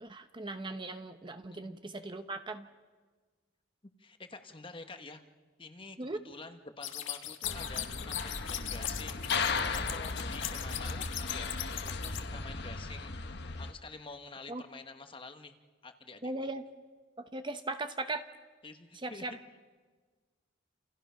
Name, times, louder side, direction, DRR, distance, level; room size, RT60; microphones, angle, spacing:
voice 1, 0.0-2.7 6.0-6.2 14.5-14.6 16.2-16.6 17.2-18.2 19.0-19.4, right 2 dB, 25° right, 8 dB, 0.9 m, -38 dB
voice 2, 4.0-5.2 5.6-13.1 13.6-15.5 15.8-16.5 18.6-19.4, left 3 dB, 25° left, 7 dB, 1.3 m, -48 dB
sound 1, 6.8-12.2, left 11 dB, 75° left, 1.6 m, -39 dB
sound 2, 7.4-13.7, left 4 dB, 60° left, 1.3 m, -36 dB
29.0 x 28.5 x 5.7 m, 1.4 s
head